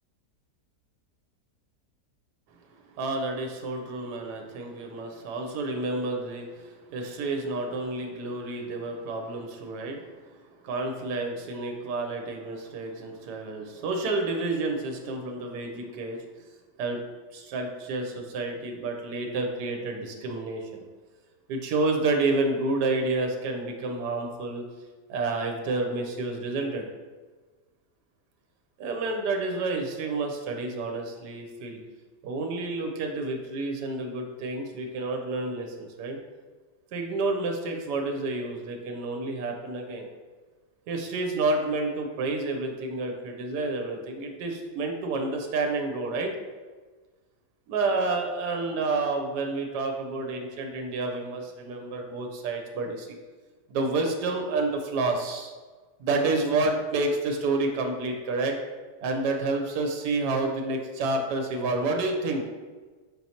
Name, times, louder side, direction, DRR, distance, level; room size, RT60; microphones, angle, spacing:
voice 1, 2.9-16.4 16.8-17.0 17.3-20.8 21.5-24.6 25.1-26.9 28.8-31.8 32.2-36.2 36.9-40.1 40.9-46.3 47.7-53.2 53.7-55.5 56.0-58.5 59.0-62.4, right 3 dB, 75° right, 3 dB, 1.2 m, -29 dB
4.5 x 4.1 x 2.8 m, 1.4 s
omnidirectional pair, 1.8 m